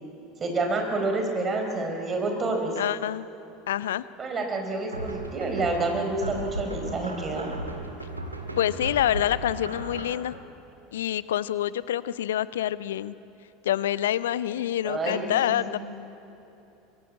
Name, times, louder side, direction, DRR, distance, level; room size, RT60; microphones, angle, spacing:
voice 1, 0.4-2.7 4.2-7.5 14.8-15.8, right 2 dB, 25° right, 3 dB, 4.5 m, -28 dB
voice 2, 2.8-3.2 3.7-4.0 8.6-10.4 10.9-13.1 13.6-15.8, left 12 dB, 70° left, 17 dB, 0.6 m, -26 dB
sound 1, 4.9-10.1, right 1 dB, 85° right, 2.1 m, -36 dB
24.5 x 22.0 x 8.6 m, 2.8 s
figure-of-eight pair, 75°, 0 cm